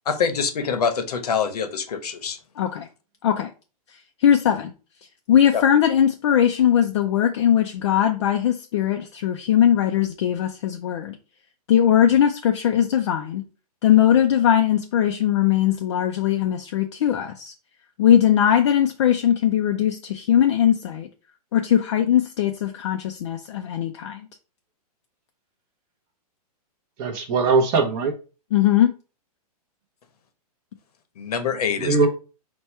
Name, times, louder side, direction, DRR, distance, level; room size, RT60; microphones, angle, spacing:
voice 1, 0.1-2.4 5.5-5.6 31.2-32.0, left 6 dB, 70° left, 0.9 m, -25 dB
voice 2, 2.6-2.9 3.2-3.5 4.2-4.7 5.3-11.2 11.7-13.4 13.8-17.5 18.0-21.1 21.5-24.3 28.5-28.9, left 10 dB, 45° left, 0.4 m, -20 dB
voice 3, 27.0-28.1 31.8-32.1, right 4 dB, 20° right, 0.7 m, -20 dB
4.3 x 2.2 x 4.4 m
hypercardioid pair, 160°, 20 cm